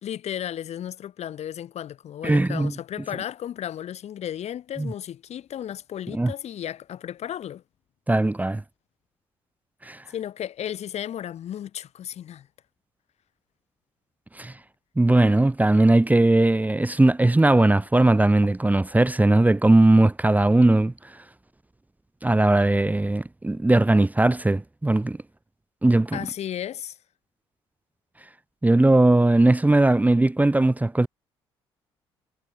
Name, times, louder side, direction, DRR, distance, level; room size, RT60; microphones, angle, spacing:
voice 1, 0.0-7.6 10.1-12.5 26.1-27.0, left 10 dB, 60° left, 3.9 m, -34 dB
voice 2, 2.2-2.7 4.8-4.9 6.1-6.3 8.1-8.6 9.8-10.0 14.3-14.6 15.0-21.2 22.2-25.2 25.8-26.2 28.6-31.1, right 2 dB, 10° right, 1.0 m, -19 dB
hypercardioid pair, 50°, 13 cm